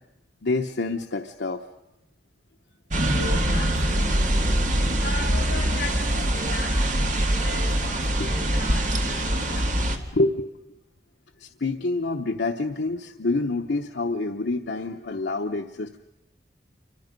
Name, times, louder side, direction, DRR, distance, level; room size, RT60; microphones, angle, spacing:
voice 1, 0.4-1.6 8.2-8.3 10.1-10.5 11.4-16.0, left 2 dB, 90° left, 5 dB, 0.9 m, -27 dB
sound 1, 2.9-10.0, right 1 dB, 45° right, 1.9 m, -23 dB
voice 2, 3.0-4.7 5.0-10.1, left 3 dB, 65° left, 1 dB, 6.9 m, -38 dB
28.0 x 24.5 x 5.3 m, 0.90 s
head